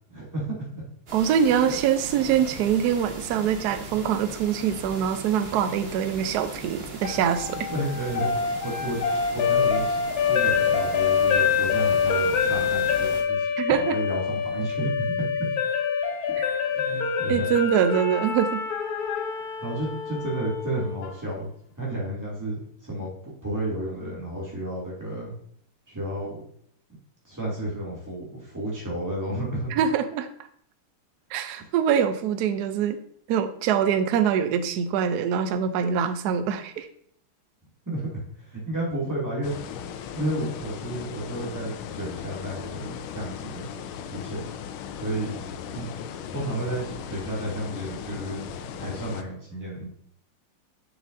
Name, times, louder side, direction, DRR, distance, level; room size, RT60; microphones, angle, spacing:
voice 1, 0.1-0.8 7.7-8.3 8.6-9.0 9.3-10.0 10.2-15.3 16.7-17.5 19.6-21.5 21.8-23.1 23.4-25.3 25.9-26.4 27.2-29.7 37.9-38.2 38.5-39.5 40.1-43.7 44.1-44.4 44.9-45.4 45.7-45.9 46.3-48.4 48.7-49.9, right 1 dB, 10° right, -5 dB, 2.2 m, -32 dB
sound 1, 1.1-13.2, right 1 dB, 35° right, 1.1 m, -40 dB
voice 2, 1.1-7.7 13.6-14.0 17.3-18.6 29.7-30.3 31.3-33.0 33.3-36.9, right 8 dB, 75° right, 9 dB, 0.9 m, -24 dB
sound 2, 7.0-21.1, left 6 dB, 65° left, 1.0 m, -26 dB
sound 3, 39.4-49.2, left 8 dB, 80° left, 1.3 m, -37 dB
7.5 x 6.4 x 2.6 m, 0.63 s
omnidirectional pair, 2.3 m